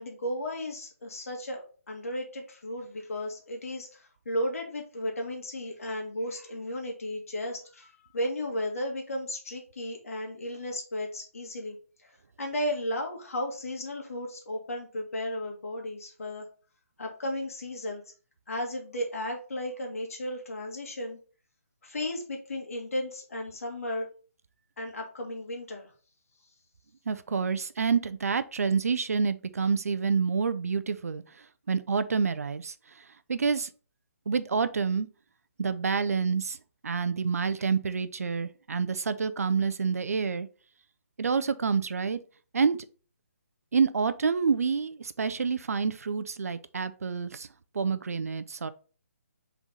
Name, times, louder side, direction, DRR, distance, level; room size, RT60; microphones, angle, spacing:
voice 1, 0.0-11.8 12.0-16.5 17.0-18.0 18.5-21.2 21.8-24.1 24.8-25.9, left 1 dB, 65° left, 1.7 m, -34 dB
voice 2, 27.1-31.2 31.7-32.7 33.3-33.7 34.3-35.1 35.6-36.6 36.8-40.5 41.2-42.2 42.5-42.8 43.7-47.5 47.7-48.7, right 5 dB, 75° right, 0.5 m, -28 dB
3.7 x 3.4 x 4.0 m
hypercardioid pair, 150°, 8 cm